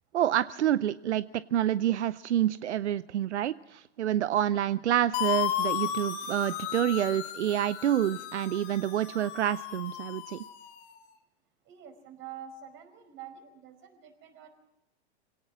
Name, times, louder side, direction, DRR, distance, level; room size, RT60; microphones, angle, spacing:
voice 1, 0.1-1.2 1.5-10.4, right 11 dB, 85° right, 16 dB, 0.6 m, -28 dB
sound 1, 5.1-10.9, left 11 dB, 50° left, 3.7 m, -34 dB
voice 2, 11.7-14.5, right 8 dB, 35° right, 6 dB, 4.9 m, -47 dB
24.5 x 17.5 x 6.1 m, 0.90 s
hypercardioid pair, 110°, 34 cm